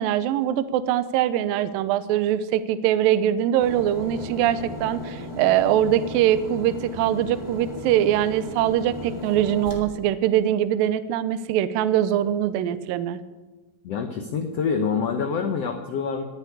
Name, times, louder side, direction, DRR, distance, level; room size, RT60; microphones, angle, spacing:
voice 1, 0.0-13.2, right 11 dB, 80° right, 13 dB, 2.3 m, -22 dB
sound 1, 3.6-9.8, left 1 dB, 20° left, 1.3 m, -36 dB
voice 2, 13.8-16.2, left 6 dB, 90° left, 6 dB, 1.4 m, -26 dB
19.5 x 7.0 x 9.7 m, 1.2 s
omnidirectional pair, 4.3 m